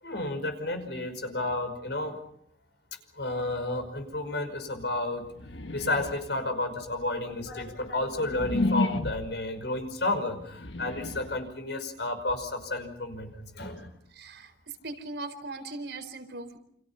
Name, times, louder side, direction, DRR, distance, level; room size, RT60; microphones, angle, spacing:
voice 1, 0.0-2.2 3.1-5.3 5.7-13.9, left 2 dB, 70° left, 7 dB, 5.3 m, -31 dB
sound 1, 5.3-6.4 7.0-9.5 10.4-11.5, left 2 dB, 90° left, 1.5 m, -31 dB
voice 2, 14.1-14.5 14.8-16.6, right 2 dB, 75° right, 7 dB, 4.2 m, -39 dB
29.0 x 27.5 x 5.7 m, 0.70 s
head